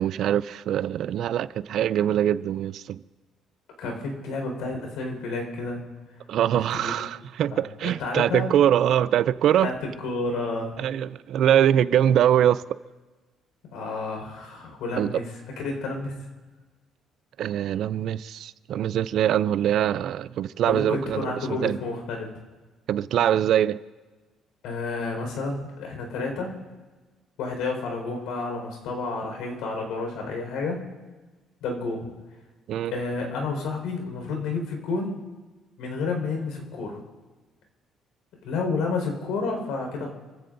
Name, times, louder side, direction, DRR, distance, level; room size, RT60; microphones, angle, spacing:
voice 1, 0.0-3.0 6.3-9.7 10.8-12.6 15.0-15.2 17.4-21.8 22.9-23.8 32.7-32.9, right 10 dB, 55° right, 0.4 m, -23 dB
voice 2, 3.8-5.8 6.7-6.9 7.5-7.6 8.0-8.5 9.6-9.7 10.0-10.8 13.7-15.2 15.6-16.1 20.7-22.3 24.6-26.5 27.4-30.8 31.6-32.1 32.9-35.2 35.8-37.0 38.4-40.1, left 3 dB, 85° left, 4.8 m, -30 dB
28.5 x 15.5 x 2.7 m
cardioid pair, 165°, 0 cm